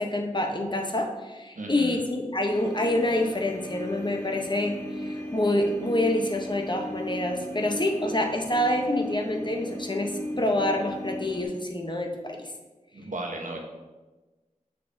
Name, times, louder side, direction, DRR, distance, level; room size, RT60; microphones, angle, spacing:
voice 1, 0.0-12.5, left 1 dB, 35° left, 2 dB, 0.8 m, -27 dB
voice 2, 1.6-2.0 12.9-13.6, right 2 dB, 75° right, 1 dB, 1.0 m, -35 dB
sound 1, 2.5-11.4, left 1 dB, 20° left, 2.2 m, -37 dB
6.9 x 6.5 x 2.7 m, 1.2 s
wide cardioid pair, 45°, 13 cm